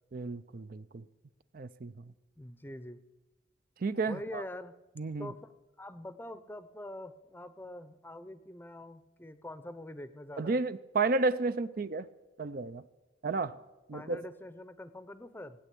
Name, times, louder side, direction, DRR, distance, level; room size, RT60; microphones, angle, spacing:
voice 1, 0.1-1.0 1.5-1.9 3.8-4.4 5.0-5.3 10.4-12.1 12.4-12.8 13.2-13.6 13.9-14.2, right 3 dB, 50° right, 0.5 m, -32 dB
voice 2, 2.4-3.0 4.1-4.7 5.2-5.4 5.8-10.6 13.9-15.6, left 1 dB, 10° left, 0.7 m, -44 dB
17.5 x 9.1 x 8.4 m
head